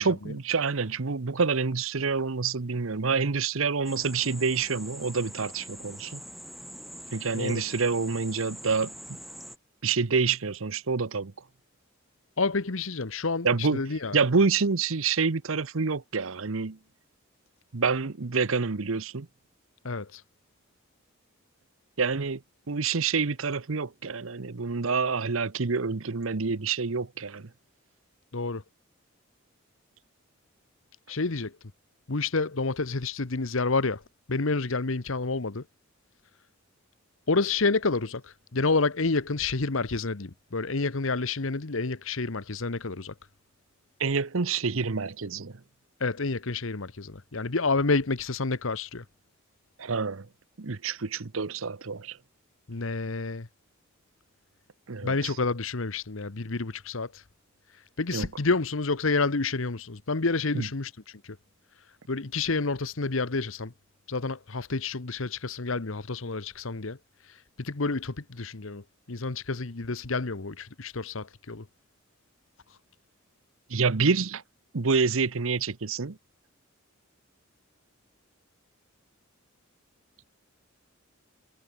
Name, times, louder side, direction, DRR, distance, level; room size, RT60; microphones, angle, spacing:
voice 1, 0.0-6.2 7.1-8.9 9.8-11.3 13.4-13.8 14.1-16.8 17.7-19.3 22.0-22.4 22.7-27.5 44.0-45.6 49.8-50.3 50.6-52.2 54.9-55.3 58.1-58.3 60.5-60.7 73.7-74.4 74.7-76.2, right 4 dB, 70° right, 0.9 m, -27 dB
sound 1, 3.9-9.6, equal, ahead, 3.7 m, -44 dB
voice 2, 12.4-13.5 13.7-14.2 19.8-20.2 28.3-28.6 31.1-31.5 32.1-34.0 34.3-35.6 37.3-43.1 46.0-49.0 52.7-53.5 55.0-57.1 58.0-60.9 62.1-63.7 64.1-67.0 67.6-68.8 69.1-71.6, left 3 dB, 70° left, 1.1 m, -29 dB
head